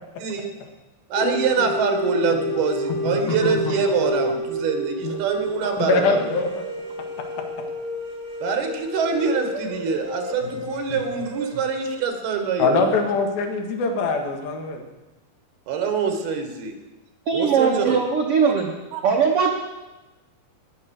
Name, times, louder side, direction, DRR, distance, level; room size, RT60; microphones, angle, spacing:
voice 1, 1.1-6.3 8.4-12.8 15.7-16.7 17.3-18.0 18.9-19.0, right 6 dB, 90° right, 5 dB, 3.7 m, -25 dB
sound 1, 1.2-12.0, equal, 45° right, 1.2 m, -30 dB
voice 2, 3.1-3.8 5.0-5.2 5.8-6.6 12.6-14.8, left 3 dB, 75° left, 4 dB, 3.4 m, -23 dB
voice 3, 17.3-18.7 19.0-19.5, right 6 dB, 70° right, 2 dB, 1.3 m, -20 dB
15.0 x 10.5 x 6.5 m, 1.1 s
omnidirectional pair, 4.3 m